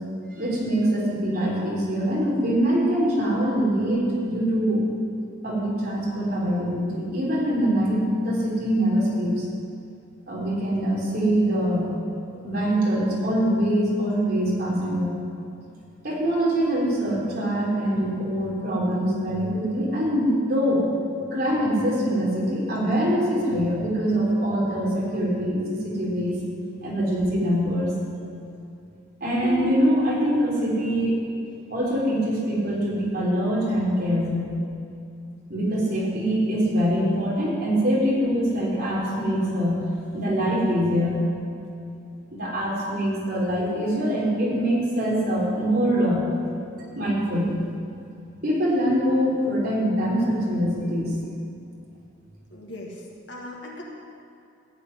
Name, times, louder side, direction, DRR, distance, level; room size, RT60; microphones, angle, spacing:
voice 1, 0.3-4.8 5.4-9.4 10.3-11.9 12.4-15.2 16.0-20.9 21.3-26.4 26.8-27.9 29.2-31.2 31.7-34.5 35.5-39.8 40.1-41.2 42.3-46.2 46.9-47.6 48.4-51.2, equal, 50° right, -5 dB, 3.6 m, -23 dB
voice 2, 52.5-53.8, left 1 dB, 60° left, -2 dB, 2.0 m, -39 dB
14.5 x 5.2 x 9.5 m, 2.6 s
head